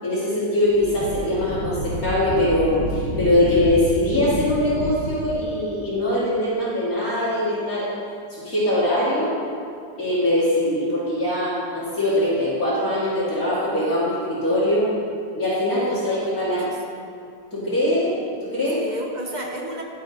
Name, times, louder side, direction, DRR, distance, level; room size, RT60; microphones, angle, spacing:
voice 1, 0.0-7.9 8.3-9.4 10.0-14.9 15.4-16.7 17.5-18.8, left 1 dB, 55° left, -9 dB, 2.6 m, -22 dB
Wind, 0.6-5.4, right 1 dB, 10° left, 1.1 m, -30 dB
voice 2, 15.8-17.1 17.5-17.8 18.7-19.8, equal, 45° right, 0 dB, 0.6 m, -34 dB
11.0 x 7.6 x 3.9 m, 2.4 s
omnidirectional pair, 1.9 m